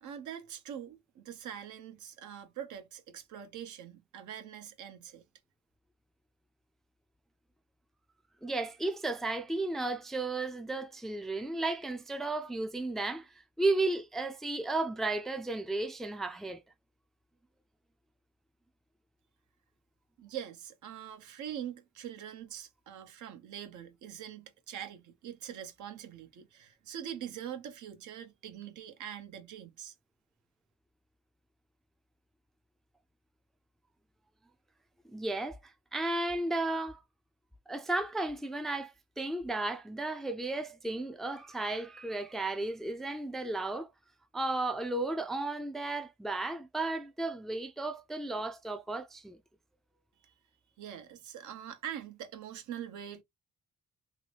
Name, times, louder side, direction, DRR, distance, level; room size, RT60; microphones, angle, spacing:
voice 1, 0.0-5.2 20.2-29.9 50.2-50.3 50.8-53.2, right 9 dB, 75° right, 0.9 m, -43 dB
voice 2, 8.4-13.3 13.6-16.6 35.1-37.0 37.7-43.9 44.3-49.4, right 2 dB, ahead, 0.4 m, -34 dB
2.8 x 2.6 x 3.2 m
cardioid pair, 90°, 30 cm